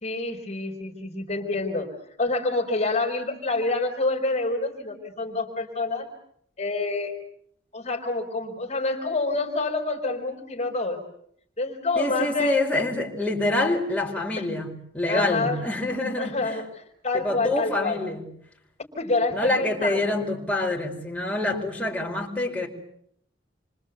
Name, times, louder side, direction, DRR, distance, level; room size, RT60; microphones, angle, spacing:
voice 1, 0.0-1.9 2.2-6.1 6.6-7.2 7.7-11.0 11.6-12.6 14.4-14.5 15.1-15.6 16.2-16.7 17.0-18.0 19.0-20.2, left 3 dB, 40° left, 2 dB, 4.5 m, -27 dB
voice 2, 12.0-16.6 17.1-18.3 19.3-22.7, left 2 dB, 5° left, -2 dB, 4.8 m, -26 dB
28.5 x 25.0 x 8.1 m, 0.69 s
head